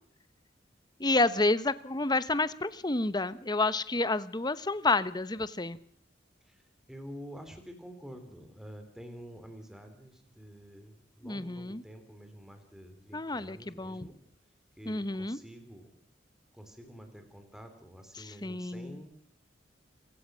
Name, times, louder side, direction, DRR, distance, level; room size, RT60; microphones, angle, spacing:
voice 1, 1.0-5.8 11.2-11.8 13.1-14.1 14.9-15.4 18.2-19.0, left 2 dB, 20° left, 15 dB, 0.9 m, -30 dB
voice 2, 6.4-14.2 14.8-15.9 16.5-19.2, equal, 5° right, 6 dB, 3.5 m, -48 dB
27.5 x 16.0 x 6.3 m, 0.62 s
head